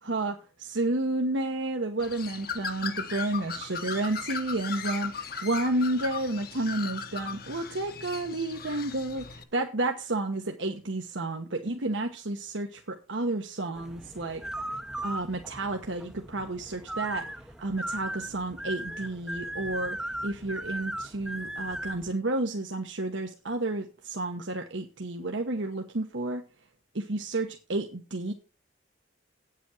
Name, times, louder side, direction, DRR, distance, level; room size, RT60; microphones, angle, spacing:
voice 1, 0.0-14.4 15.0-17.3 17.6-26.4 26.9-28.3, right 2 dB, 80° right, 4 dB, 1.2 m, -31 dB
Bird, 2.0-9.4, left 5 dB, 50° left, 1.1 m, -37 dB
sound 1, 13.7-22.1, right 1 dB, 5° right, 0.6 m, -37 dB
9.0 x 8.2 x 6.1 m, 0.34 s
head